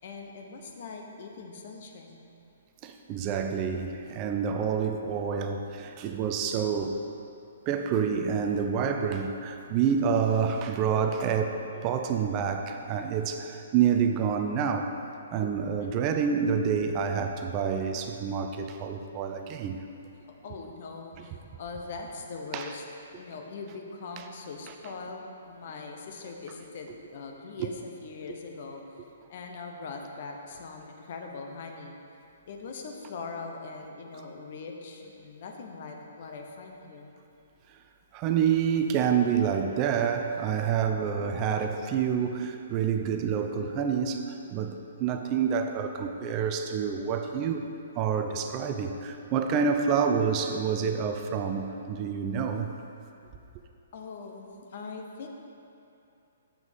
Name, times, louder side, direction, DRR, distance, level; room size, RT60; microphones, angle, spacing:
voice 1, 0.0-2.3 15.6-16.0 20.2-22.8 23.1-32.0 32.5-37.1 49.5-49.8 53.9-55.3, left 4 dB, 50° left, 2 dB, 0.9 m, -41 dB
voice 2, 2.8-7.1 7.7-15.0 15.3-19.8 22.5-22.7 24.2-24.3 27.6-27.7 37.7-37.8 38.1-47.6 48.0-52.7, right 7 dB, 30° right, 6 dB, 0.5 m, -28 dB
7.5 x 6.2 x 5.1 m, 2.7 s
figure-of-eight pair, 125°, 0 cm